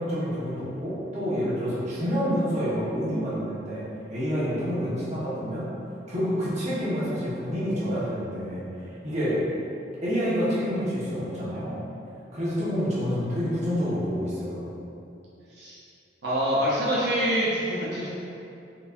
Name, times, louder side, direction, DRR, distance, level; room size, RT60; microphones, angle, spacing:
voice 1, 0.0-5.7 6.1-9.4 10.0-11.8 12.3-14.7, equal, 40° right, -9 dB, 0.9 m, -28 dB
voice 2, 16.2-18.1, equal, 70° right, -8 dB, 0.7 m, -25 dB
4.5 x 2.6 x 2.4 m, 2.7 s
head